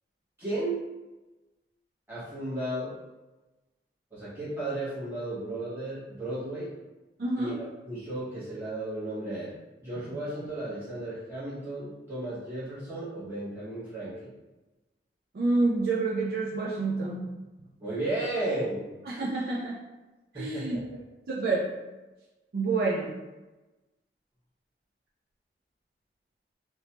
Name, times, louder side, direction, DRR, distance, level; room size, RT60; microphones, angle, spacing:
voice 1, 0.4-0.8 2.1-2.9 4.1-6.7 7.4-9.5 9.8-14.3 17.8-18.9 20.3-21.0, right 1 dB, 10° right, -12 dB, 1.3 m, -34 dB
voice 2, 7.2-7.6 15.3-17.3 19.1-19.8 20.4-20.8 21.3-21.7 22.5-23.1, right 3 dB, 55° right, -3 dB, 0.3 m, -28 dB
3.0 x 2.1 x 2.9 m, 1.1 s
head